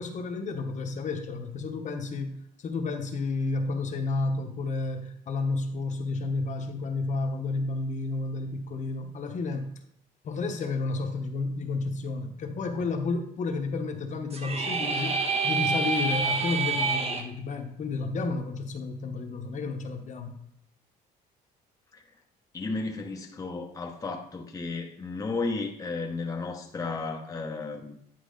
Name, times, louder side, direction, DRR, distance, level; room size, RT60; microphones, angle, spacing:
voice 1, 0.0-9.7 10.2-20.3, left 3 dB, 45° left, 5 dB, 1.0 m, -31 dB
sound 1, 14.3-17.2, right 3 dB, 35° right, 1.1 m, -27 dB
voice 2, 22.5-28.0, left 3 dB, 20° left, 1 dB, 0.8 m, -33 dB
10.5 x 4.6 x 3.9 m, 0.73 s
cardioid pair, 110°, 17 cm